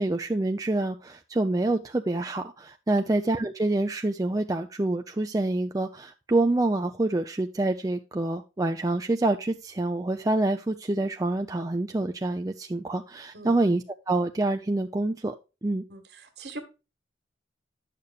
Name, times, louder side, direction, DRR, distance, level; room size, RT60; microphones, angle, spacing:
voice 1, 0.0-15.3 15.6-15.8, right 2 dB, 20° right, 0.4 m, -27 dB
voice 2, 15.9-16.6, right 1 dB, 60° right, 1.7 m, -41 dB
11.0 x 6.7 x 2.4 m
head